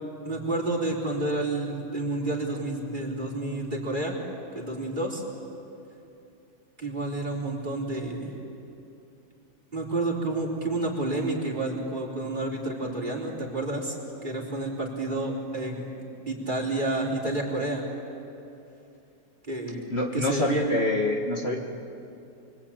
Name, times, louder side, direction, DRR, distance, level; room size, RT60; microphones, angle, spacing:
voice 1, 0.2-4.2 4.5-5.2 6.8-8.3 9.7-13.9 14.2-15.8 16.3-17.8 19.5-19.8 20.1-20.5, right 2 dB, 30° right, -1 dB, 4.4 m, -30 dB
voice 2, 19.9-21.6, left 1 dB, 40° left, 0 dB, 2.0 m, -25 dB
29.5 x 22.5 x 8.9 m, 2.7 s
omnidirectional pair, 1.7 m